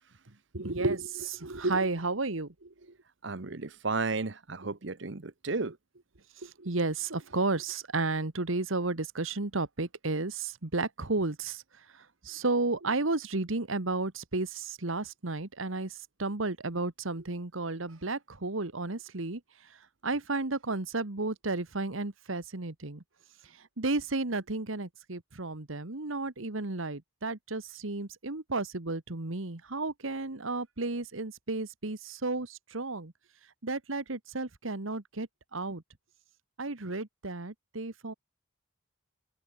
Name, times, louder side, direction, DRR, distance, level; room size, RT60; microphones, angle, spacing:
voice 1, 0.5-2.7 6.4-11.6 11.9-19.4 20.0-23.0 23.8-33.1 33.6-35.8 36.6-38.1, right 3 dB, 75° right, 1.6 m, -33 dB
voice 2, 3.2-5.8, right 3 dB, 60° right, 1.0 m, -33 dB
open air
head